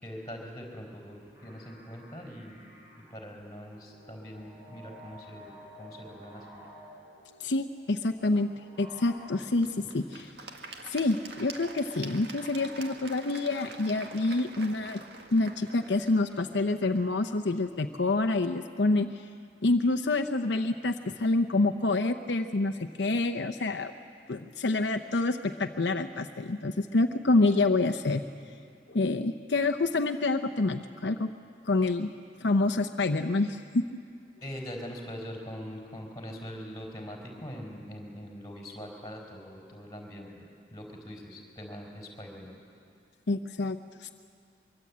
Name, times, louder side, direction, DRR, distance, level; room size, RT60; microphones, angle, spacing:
voice 1, 0.0-2.6 3.1-6.6 34.4-40.4 40.7-42.5, equal, 20° left, 0 dB, 4.6 m, -42 dB
sound 1, 1.1-9.4, equal, 15° right, 6.9 m, -52 dB
voice 2, 7.4-8.5 8.8-9.7 9.9-10.3 10.9-15.0 15.3-19.1 19.6-23.9 24.3-28.2 28.9-31.3 31.7-32.1 32.4-33.8 43.3-44.1, left 2 dB, 75° left, 6 dB, 0.8 m, -27 dB
Applause / Crowd, 8.9-18.0, right 3 dB, 65° right, 1.8 m, -47 dB
23.5 x 22.5 x 8.6 m, 2.4 s
head